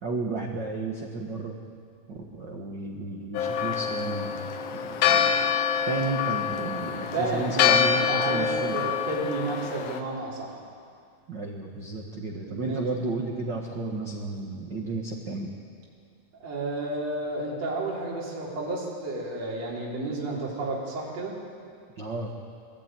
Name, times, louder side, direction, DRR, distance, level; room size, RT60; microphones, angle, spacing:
voice 1, 0.0-1.6 2.1-5.4 5.9-8.8 11.3-15.5 22.0-22.3, right 3 dB, 70° right, 0 dB, 1.0 m, -32 dB
Church bell, 3.3-10.0, left 7 dB, 80° left, 2.8 m, -26 dB
voice 2, 7.1-8.5 8.7-10.6 12.5-12.8 16.4-21.3, right 2 dB, 45° right, -5 dB, 4.5 m, -31 dB
20.5 x 15.0 x 9.0 m, 2.2 s
omnidirectional pair, 4.5 m